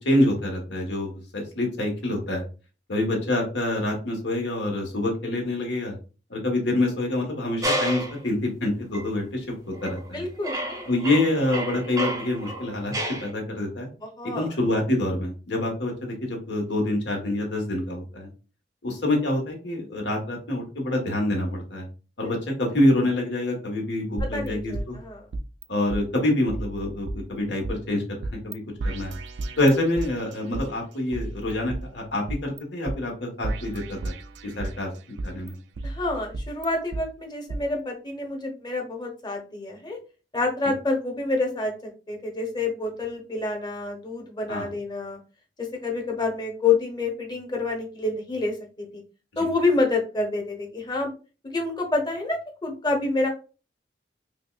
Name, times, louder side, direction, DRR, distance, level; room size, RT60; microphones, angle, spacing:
voice 1, 0.0-2.4 2.9-5.9 6.3-10.2 10.9-12.9 13.2-13.9 14.2-18.3 18.8-21.9 22.2-25.0 25.7-29.1 29.6-34.1 34.4-35.5 44.5-44.7 49.3-49.5, left 1 dB, 80° left, 1 dB, 1.3 m, -26 dB
sound 1, 7.6-8.2 8.9-9.1 9.7-10.1 10.4-13.3, right 1 dB, 20° right, 0.6 m, -30 dB
voice 2, 10.1-10.9 14.2-14.5 24.3-25.2 35.8-40.0 40.3-45.2 45.6-49.0 49.4-51.1 51.4-53.3, left 3 dB, 25° left, 2 dB, 0.9 m, -28 dB
sound 2, 24.2-25.6 25.9-26.0 26.5-27.7 28.2-28.5 28.8-30.7 31.1-32.6 32.9-33.0 33.4-34.8 35.2-37.0 37.5-37.6, right 2 dB, 80° right, 0.4 m, -33 dB
5.2 x 2.2 x 2.4 m, 0.34 s
head